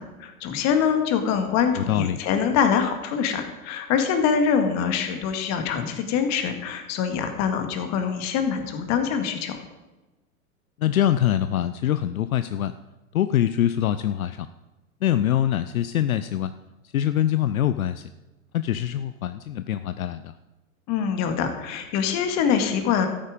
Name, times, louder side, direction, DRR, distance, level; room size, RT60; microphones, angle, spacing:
voice 1, 0.0-9.6 20.9-23.1, left 7 dB, 40° left, 6 dB, 1.9 m, -24 dB
voice 2, 1.8-2.2 10.8-12.7 13.1-14.5 15.0-16.5 16.9-18.1 18.5-20.3, left 11 dB, 75° left, 11 dB, 0.6 m, -24 dB
13.0 x 8.9 x 5.2 m, 1.1 s
hypercardioid pair, 100°, 43 cm